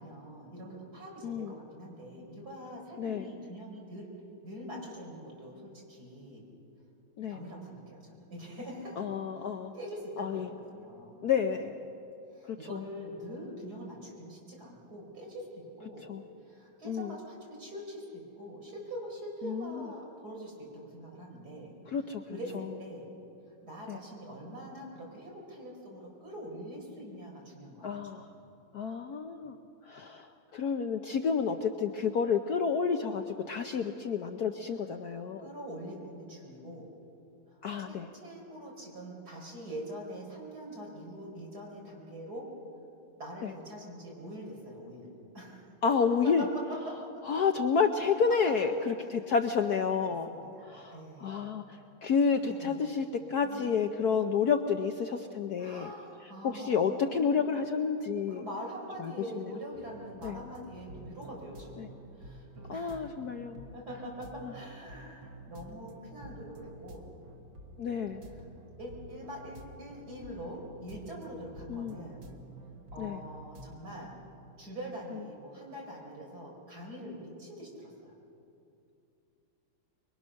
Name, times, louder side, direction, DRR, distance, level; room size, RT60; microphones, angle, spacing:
voice 1, 0.0-4.1 4.4-6.4 7.3-9.0 9.7-11.2 12.3-16.1 16.4-21.8 22.3-23.1 23.6-28.3 35.4-36.9 37.5-37.6 37.9-42.5 43.2-45.7 46.4-46.8 47.0-47.2 49.0-49.2 50.1-51.5 52.4-52.8 53.4-53.7 54.1-54.4 55.6-57.5 58.3-63.1 63.7-67.1 68.8-72.2 72.9-74.1 74.6-78.1, equal, 45° right, -2 dB, 5.6 m, -44 dB
voice 2, 1.2-1.5 3.0-3.3 7.2-7.4 9.0-9.7 10.2-10.5 11.2-11.8 12.5-12.8 16.1-16.2 16.8-17.2 19.4-19.9 21.9-22.2 23.9-24.0 27.8-28.3 28.7-29.6 29.8-35.5 37.6-38.1 43.4-43.5 45.8-46.4 47.2-50.3 50.6-55.9 56.4-58.4 59.0-59.5 60.2-60.4 61.8-61.9 62.7-63.7 64.4-64.5 67.8-68.2 71.7-72.0 73.0-73.2, left 6 dB, 60° left, 6 dB, 1.1 m, -30 dB
sound 1, 59.7-74.1, right 1 dB, 70° right, 2.5 m, -50 dB
24.5 x 23.5 x 6.4 m, 2.6 s
omnidirectional pair, 2.3 m